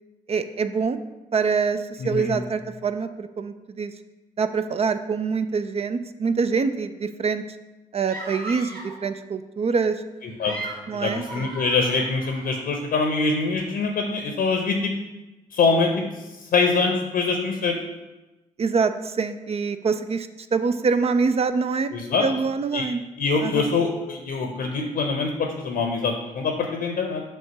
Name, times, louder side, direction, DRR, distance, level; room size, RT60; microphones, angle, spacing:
voice 1, 0.3-1.0 1.3-3.9 4.4-7.4 7.9-10.0 10.9-11.5 18.6-21.9 22.2-23.0 23.4-23.7, right 5 dB, 35° right, 11 dB, 0.5 m, -25 dB
voice 2, 2.0-2.3 10.2-10.6 10.9-14.9 15.5-17.8 21.9-22.3 22.7-22.9 23.2-27.2, left 4 dB, 55° left, 3 dB, 0.8 m, -24 dB
sound 1, 8.1-9.0 10.2-12.6, right 2 dB, 50° right, 1.9 m, -37 dB
5.3 x 3.6 x 5.6 m, 1.1 s
figure-of-eight pair, 40°, 19 cm